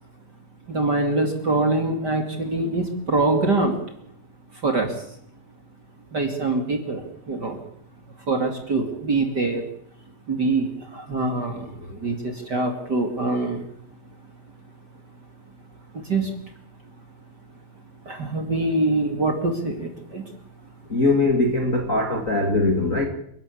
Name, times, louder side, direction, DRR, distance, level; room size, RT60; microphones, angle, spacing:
voice 1, 0.7-3.8 4.6-5.1 6.1-7.6 8.3-9.7 10.3-13.6 16.0-16.4 18.1-20.3, right 2 dB, 30° right, 4 dB, 2.5 m, -24 dB
voice 2, 20.9-23.0, left 2 dB, 30° left, 2 dB, 1.8 m, -21 dB
29.0 x 12.0 x 8.5 m, 0.71 s
omnidirectional pair, 4.2 m